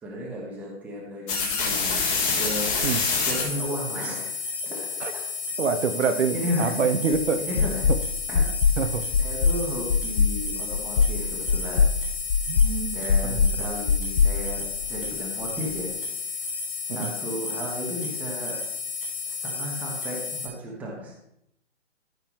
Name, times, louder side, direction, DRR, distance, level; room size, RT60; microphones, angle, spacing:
voice 1, 0.0-3.0 3.2-4.8 5.1-5.2 6.3-6.8 7.4-7.9 8.3-8.8 9.2-12.0 12.5-15.9 16.4-16.5 16.8-18.6 19.3-21.1, equal, 5° right, -3 dB, 1.0 m, -34 dB
sound 1, 1.3-20.5, left 5 dB, 20° left, 1.9 m, -30 dB
voice 2, 5.6-7.4 8.8-9.1 12.5-13.0 13.3-13.7 16.9-17.1, right 6 dB, 75° right, 8 dB, 1.0 m, -26 dB
sound 2, 7.1-7.2 7.6-8.0 8.3-8.8 9.1-9.6 9.9-10.3 10.7-11.1 11.5-11.9 12.3-12.7 13.1-13.6 13.9-15.1, left 5 dB, 45° left, 0.7 m, -21 dB
13.5 x 5.5 x 3.0 m, 0.78 s
hypercardioid pair, 160°, 36 cm